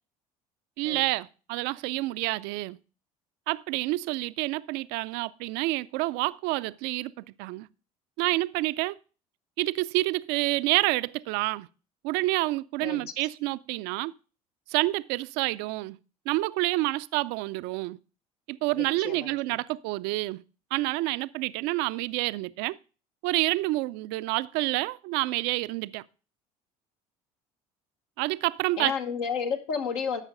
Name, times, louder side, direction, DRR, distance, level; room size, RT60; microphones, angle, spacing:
voice 1, 0.8-2.8 3.5-7.7 8.2-9.0 9.6-11.7 12.0-14.1 14.7-16.0 16.3-18.0 18.5-20.4 20.7-22.8 23.2-26.0 28.2-28.9, right 20 dB, 65° right, 0.4 m, -28 dB
voice 2, 12.8-13.1 18.7-19.3 28.8-30.2, left 6 dB, 80° left, 1.4 m, -31 dB
12.5 x 5.7 x 3.8 m
hypercardioid pair, 65°, 18 cm